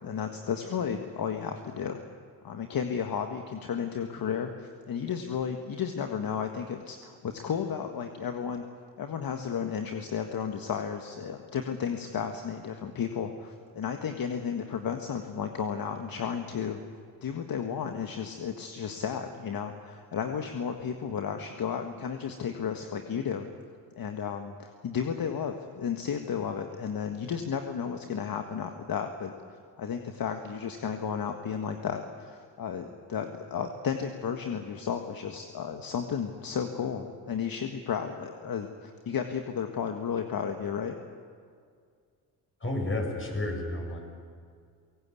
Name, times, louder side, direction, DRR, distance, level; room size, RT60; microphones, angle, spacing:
voice 1, 0.0-2.0 2.4-8.6 9.0-16.8 17.2-23.5 24.0-41.0, left 7 dB, 55° left, 5 dB, 1.7 m, -33 dB
voice 2, 42.6-44.0, left 1 dB, 30° left, 1 dB, 7.4 m, -31 dB
23.5 x 18.0 x 8.5 m, 2.2 s
supercardioid pair, 60°, 42 cm